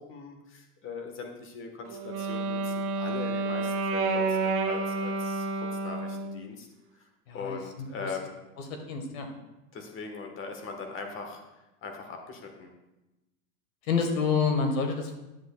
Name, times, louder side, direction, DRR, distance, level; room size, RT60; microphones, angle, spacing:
voice 1, 0.0-6.7 7.3-8.4 9.7-11.4 11.8-12.7, left 4 dB, 30° left, 4 dB, 1.3 m, -40 dB
Wind instrument woodwind instrument, 1.9-6.4, right 3 dB, 30° right, 0.8 m, -30 dB
voice 2, 7.3-7.6 8.0-8.1 8.7-9.3 13.9-15.2, left 5 dB, 65° left, 5 dB, 1.5 m, -28 dB
10.5 x 7.6 x 2.3 m, 0.98 s
hypercardioid pair, 125°, 44 cm